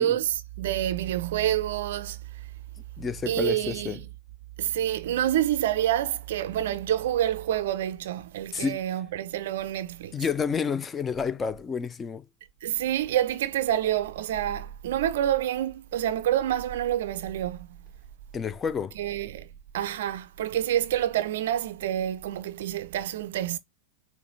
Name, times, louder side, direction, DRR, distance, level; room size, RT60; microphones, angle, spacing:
voice 1, 0.0-2.2 3.3-4.0 4.6-10.2 12.6-17.8 19.0-19.5 19.7-23.6, right 11 dB, 55° right, 0.3 m, -27 dB
voice 2, 3.0-4.0 8.5-8.8 10.1-12.3 18.3-19.0, left 6 dB, 20° left, 0.4 m, -29 dB
4.7 x 2.2 x 2.5 m
figure-of-eight pair, 90°, 0 cm